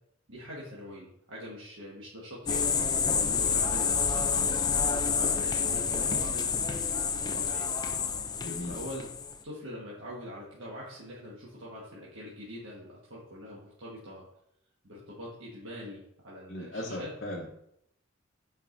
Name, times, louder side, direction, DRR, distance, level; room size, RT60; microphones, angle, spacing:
voice 1, 0.3-2.8 3.3-4.5 4.9-7.8 8.7-9.0 9.4-14.3 14.8-17.1, equal, 65° right, -6 dB, 1.4 m, -43 dB
sound 1, 2.5-9.3, left 6 dB, 20° left, 0.3 m, -28 dB
voice 2, 8.4-8.7 16.5-17.5, left 1 dB, 50° left, -4 dB, 0.9 m, -37 dB
8.8 x 4.7 x 2.6 m, 0.75 s
head